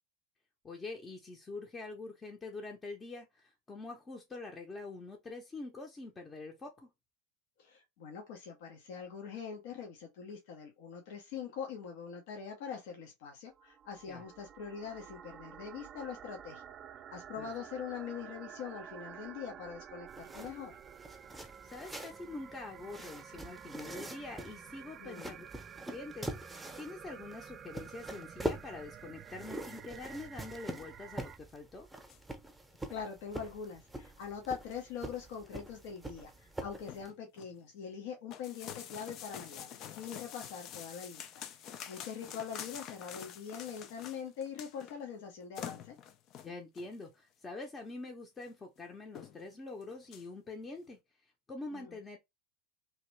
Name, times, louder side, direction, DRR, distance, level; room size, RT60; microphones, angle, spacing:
voice 1, 0.6-6.9 14.1-14.2 17.4-17.5 21.6-25.5 25.9-31.9 46.4-52.2, left 3 dB, 25° left, 0.8 m, -45 dB
voice 2, 7.6-16.6 17.1-20.8 25.0-25.3 32.9-41.3 41.6-46.0 51.7-51.9, left 7 dB, 65° left, 0.9 m, -43 dB
sound 1, 13.5-31.4, right 8 dB, 40° right, 0.3 m, -51 dB
sound 2, 20.1-37.1, right 1 dB, 5° right, 0.9 m, -45 dB
sound 3, 32.1-32.2 32.7-32.9 33.2-33.3 33.9-34.0 34.4-34.9 35.3-35.4 35.7-35.8 36.2-36.3 36.6-37.5 38.3-45.0 45.3-45.4 45.5-46.9 47.8-47.9 48.4-48.5 48.8-48.9 49.1-49.5 49.8-50.2, left 9 dB, 50° left, 0.5 m, -47 dB
2.9 x 2.9 x 3.2 m
hypercardioid pair, 80°, 0 cm